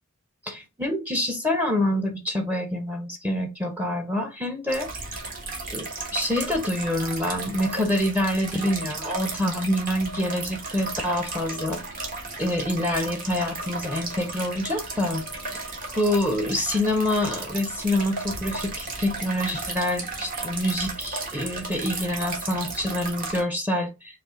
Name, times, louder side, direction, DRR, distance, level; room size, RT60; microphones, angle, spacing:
voice 1, 0.4-4.9 5.7-5.9 6.1-11.8 12.4-15.2 15.5-15.7 15.9-24.2, left 1 dB, 10° right, 0.6 m, -26 dB
sound 1, 4.7-23.4, right 3 dB, 40° right, 1.4 m, -34 dB
5.2 x 2.4 x 3.7 m
head